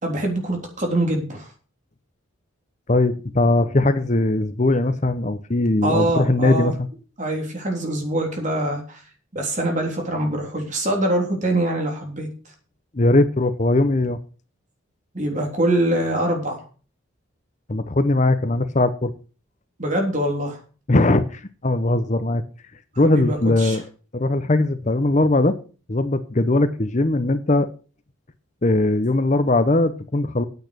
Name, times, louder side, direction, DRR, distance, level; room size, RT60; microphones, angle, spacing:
voice 1, 0.0-1.5 5.8-6.7 7.2-9.0 9.3-12.3 15.1-16.6 19.8-20.6 23.0-23.8, right 1 dB, 35° right, 2 dB, 3.5 m, -24 dB
voice 2, 2.9-6.7 12.9-14.2 17.7-19.1 20.9-22.4 23.0-23.8 24.1-25.6 25.9-27.7 28.6-30.4, left 2 dB, 35° left, 11 dB, 0.7 m, -20 dB
9.3 x 8.3 x 6.7 m, 0.37 s
head